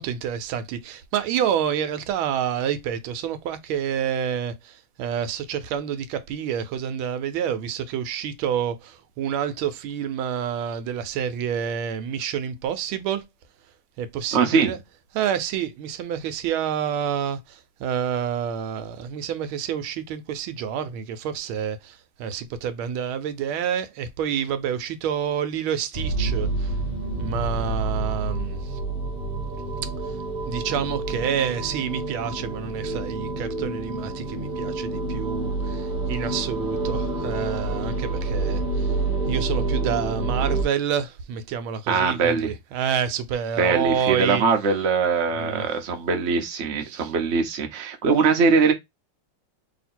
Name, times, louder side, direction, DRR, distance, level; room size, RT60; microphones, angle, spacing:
voice 1, 0.0-13.2 14.0-14.8 15.1-26.7 27.2-28.8 30.5-39.0 39.3-44.4 45.4-45.7 46.9-47.1, right 8 dB, 80° right, 1.4 m, -28 dB
voice 2, 14.3-14.7 41.9-42.5 43.6-48.7, right 5 dB, 60° right, 0.7 m, -21 dB
sound 1, 25.9-40.6, right 2 dB, 35° right, 0.9 m, -28 dB
3.1 x 2.8 x 4.2 m
omnidirectional pair, 2.3 m